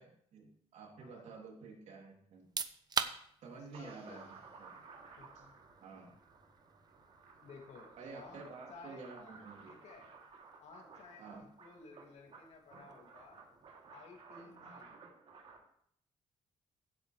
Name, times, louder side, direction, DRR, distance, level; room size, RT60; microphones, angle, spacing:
voice 1, 0.0-2.5 3.4-4.3 4.6-4.7 5.3-5.4 5.8-6.1 8.0-9.8 11.2-11.5 14.4-14.8, right 4 dB, 80° right, 0 dB, 3.1 m, -51 dB
sound 1, 2.3-15.0, right 6 dB, 35° right, 0.7 m, -47 dB
voice 2, 3.5-4.3 5.2-5.6 7.4-8.4 8.7-10.1 10.6-13.4 13.9-15.0, left 4 dB, 70° left, 2 dB, 2.6 m, -56 dB
sound 2, 3.7-15.6, right 4 dB, 60° right, 3.0 m, -56 dB
16.0 x 8.5 x 3.3 m, 0.68 s
cardioid pair, 120°, 12 cm